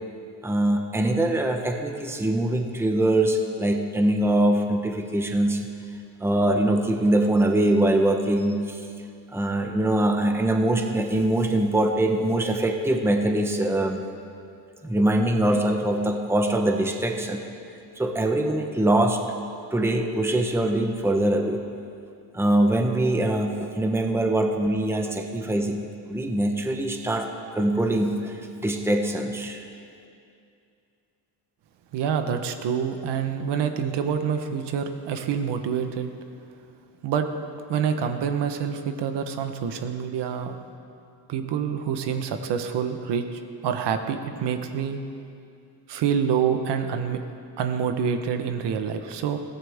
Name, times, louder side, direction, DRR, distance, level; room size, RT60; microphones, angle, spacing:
voice 1, 0.4-5.6 6.2-8.8 9.3-14.0 14.8-17.4 18.0-19.2 19.7-21.6 22.3-28.3 28.6-29.6, right 1 dB, 5° right, 3 dB, 1.0 m, -23 dB
voice 2, 31.9-36.1 37.0-37.3 37.7-40.6 41.3-45.0 45.9-47.2 47.6-49.4, right 7 dB, 70° right, 7 dB, 1.2 m, -27 dB
21.0 x 16.0 x 3.6 m, 2.5 s
cardioid pair, 140°, 42 cm